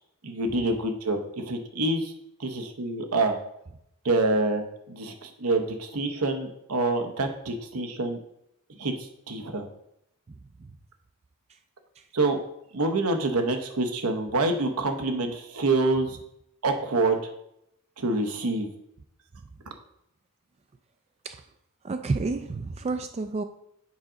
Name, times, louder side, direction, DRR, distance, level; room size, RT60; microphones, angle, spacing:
voice 1, 0.2-2.1 2.4-3.4 4.0-8.2 8.8-8.9 9.3-9.7 12.1-12.4 12.7-16.2 16.6-17.3 18.0-18.7, right 2 dB, 80° right, 1.0 m, -26 dB
voice 2, 21.8-23.4, right 3 dB, 30° right, 0.3 m, -30 dB
7.2 x 3.8 x 5.0 m
head